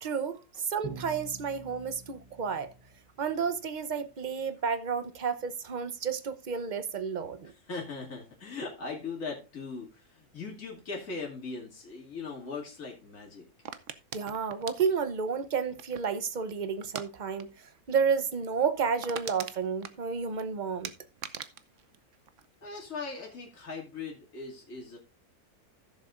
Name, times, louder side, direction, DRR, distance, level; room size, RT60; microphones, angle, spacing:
voice 1, 0.0-2.7 3.2-7.5 14.1-20.9, right 6 dB, 40° right, 0.8 m, -31 dB
Bowed string instrument, 0.8-3.6, right 4 dB, 20° right, 1.0 m, -46 dB
voice 2, 7.4-13.4 22.6-25.0, left 4 dB, 60° left, 2.9 m, -39 dB
sound 1, 13.7-16.2 16.8-17.1 17.4-17.6 17.9-18.0 18.4-18.5 18.8-20.4 20.8-22.9 23.2-23.6, right 9 dB, 60° right, 1.0 m, -42 dB
16.0 x 7.0 x 2.5 m
omnidirectional pair, 1.6 m